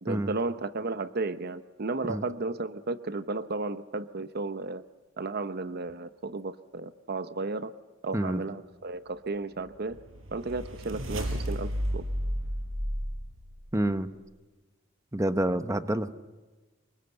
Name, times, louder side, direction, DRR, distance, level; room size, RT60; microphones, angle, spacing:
voice 1, 0.0-4.8 5.2-7.7 8.0-10.0 10.3-12.1, right 3 dB, 55° right, 12 dB, 0.8 m, -34 dB
sound 1, 9.6-13.9, equal, 90° right, 4.9 m, -33 dB
voice 2, 13.7-14.1 15.1-16.2, right 1 dB, 15° right, 10 dB, 1.0 m, -28 dB
26.0 x 23.5 x 8.1 m, 1.2 s
head